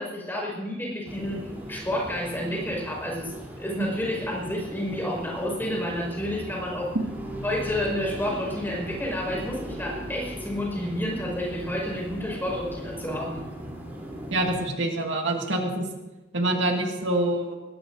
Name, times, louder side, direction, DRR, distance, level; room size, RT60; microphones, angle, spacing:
voice 1, 0.0-6.9 7.4-13.4, left 1 dB, 10° left, -2 dB, 5.2 m, -30 dB
sound 1, 1.0-14.6, equal, 10° right, 3.5 m, -38 dB
voice 2, 14.3-15.9 16.3-17.6, right 1 dB, 85° right, 1 dB, 2.0 m, -26 dB
21.0 x 18.5 x 2.7 m, 1.1 s
head